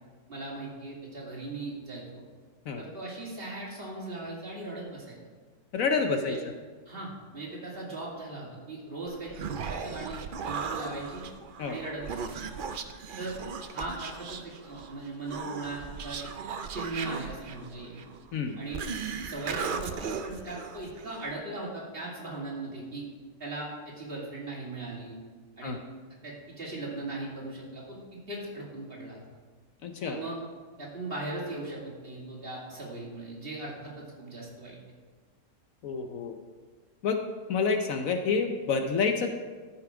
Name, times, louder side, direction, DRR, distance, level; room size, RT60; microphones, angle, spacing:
voice 1, 0.3-2.2 2.8-5.2 6.2-6.4 6.9-11.2 11.6-12.4 13.2-13.4 13.7-16.3 16.7-18.0 18.6-18.8 19.2-23.0 23.4-25.2 25.6-25.8 26.2-29.2 30.0-30.4 30.8-34.8, right 2 dB, 35° right, -5 dB, 2.6 m, -39 dB
voice 2, 5.7-6.4 11.6-11.8 18.3-18.6 25.6-25.8 29.8-30.2 35.8-36.3 37.0-37.2 37.5-39.3, left 5 dB, 65° left, 5 dB, 1.0 m, -28 dB
Human voice, 9.1-21.3, right 6 dB, 75° right, 0.4 m, -37 dB
13.0 x 5.9 x 4.8 m, 1.4 s
omnidirectional pair, 1.6 m